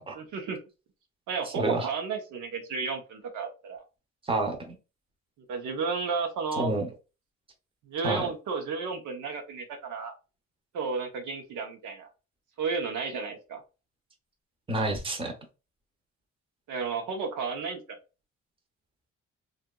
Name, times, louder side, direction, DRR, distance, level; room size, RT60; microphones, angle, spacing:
voice 1, 0.1-0.6 1.3-3.8 5.5-6.7 7.9-10.1 10.7-12.1 12.6-13.6 16.7-17.8, right 5 dB, 80° right, 3 dB, 0.8 m, -32 dB
voice 2, 1.5-1.9 4.3-4.8 6.6-6.9 8.0-8.2 14.7-15.3, right 2 dB, 20° right, 3 dB, 0.7 m, -28 dB
2.7 x 2.4 x 2.2 m, 0.30 s
cardioid pair, 90°, 30 cm